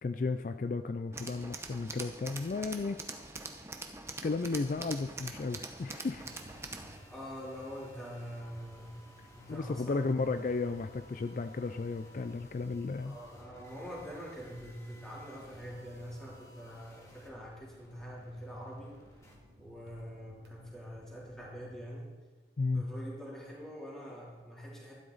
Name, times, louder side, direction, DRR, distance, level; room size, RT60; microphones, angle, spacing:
voice 1, 0.0-3.0 4.2-6.3 9.5-13.2 22.6-22.8, left 3 dB, 45° left, 9 dB, 0.3 m, -34 dB
Tools, 1.1-7.0, right 3 dB, 15° right, 0.8 m, -44 dB
sound 1, 6.0-21.9, equal, 90° right, 1.7 m, -57 dB
sound 2, 6.2-19.4, left 1 dB, 20° left, 1.9 m, -59 dB
voice 2, 7.1-9.0 9.3-10.3 13.0-18.9 19.6-22.1 22.7-24.9, equal, 5° left, -6 dB, 3.1 m, -44 dB
12.5 x 11.5 x 4.0 m, 1.3 s
head